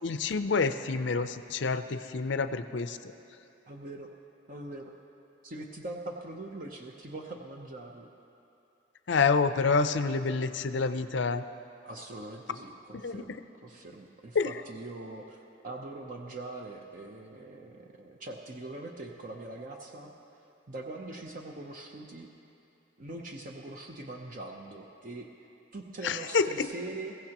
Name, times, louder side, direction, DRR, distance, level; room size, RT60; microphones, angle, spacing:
voice 1, 0.0-3.1 9.1-11.4 12.9-13.2 14.3-14.6 26.0-26.7, left 4 dB, 65° left, 11 dB, 0.5 m, -28 dB
voice 2, 3.7-4.1 4.5-4.9 5.4-8.1 11.8-20.1 20.7-22.3 23.0-25.3 25.7-27.2, right 2 dB, 45° right, 2 dB, 0.7 m, -42 dB
22.0 x 15.5 x 2.9 m, 2.8 s
head